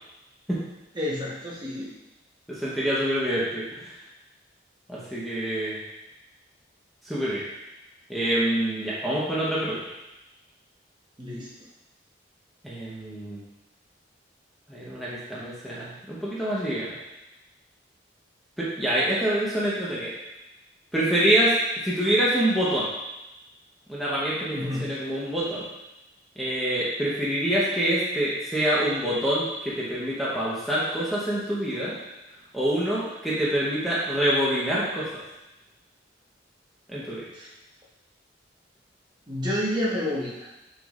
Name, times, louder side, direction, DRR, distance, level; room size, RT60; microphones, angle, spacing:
voice 1, 0.9-1.9 11.2-11.5 24.5-24.8 37.3-37.5 39.3-40.5, left 1 dB, 25° right, -6 dB, 1.2 m, -29 dB
voice 2, 2.5-4.0 4.9-5.8 7.0-7.4 8.1-9.8 12.6-13.4 14.7-17.0 18.6-20.1 20.9-21.5 21.8-22.9 23.9-25.7 26.4-32.0 32.3-35.1 36.9-37.2, right 1 dB, ahead, -8 dB, 1.0 m, -26 dB
6.3 x 6.0 x 2.5 m, 0.95 s
head